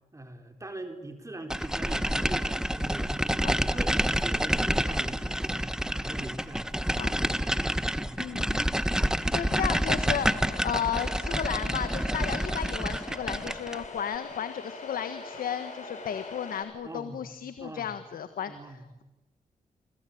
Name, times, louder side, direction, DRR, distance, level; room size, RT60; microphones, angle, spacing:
voice 1, 0.1-6.7 7.1-7.5 8.0-8.2 16.8-17.9 18.5-18.8, right 1 dB, 20° right, 6 dB, 4.1 m, -42 dB
sound 1, 1.5-13.8, equal, 5° right, 1.6 m, -28 dB
voice 2, 3.4-3.8 6.9-7.2 8.2-8.6 9.3-18.5, left 8 dB, 85° left, 10 dB, 1.6 m, -34 dB
sound 2, 10.0-16.6, left 3 dB, 60° left, 7.6 m, -42 dB
27.0 x 25.0 x 8.7 m, 1.0 s
cardioid pair, 65°, 14 cm